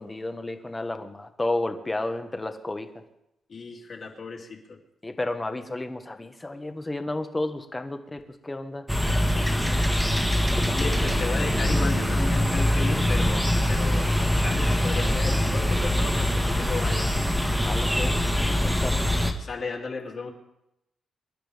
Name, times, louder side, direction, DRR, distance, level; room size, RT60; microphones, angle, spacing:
voice 1, 0.0-2.9 5.0-8.8 10.5-10.7 17.6-19.0, left 2 dB, 15° left, 7 dB, 1.4 m, -32 dB
voice 2, 3.5-4.8 9.3-9.9 10.7-17.1 19.4-20.3, left 4 dB, 45° left, 0 dB, 2.9 m, -35 dB
sound 1, 8.9-19.3, left 1 dB, ahead, 1.6 m, -23 dB
26.0 x 12.5 x 3.6 m, 0.84 s
cardioid pair, 130°, 0 cm